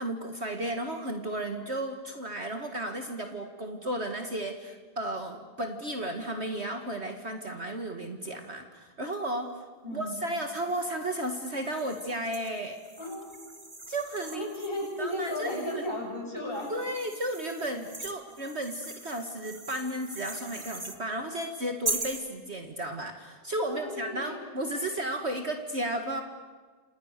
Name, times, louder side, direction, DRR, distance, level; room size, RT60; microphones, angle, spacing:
voice 1, 0.0-9.5 9.9-12.8 13.9-14.5 15.0-15.6 16.7-26.2, right 1 dB, 40° right, 5 dB, 2.1 m, -34 dB
voice 2, 9.8-10.3 13.0-13.5 14.3-16.7 23.6-24.4, left 1 dB, 35° left, -1 dB, 7.7 m, -35 dB
sound 1, 10.3-15.9 16.5-21.0 21.8-22.3, right 2 dB, 15° right, 1.9 m, -41 dB
30.0 x 27.5 x 6.7 m, 1.4 s
omnidirectional pair, 1.7 m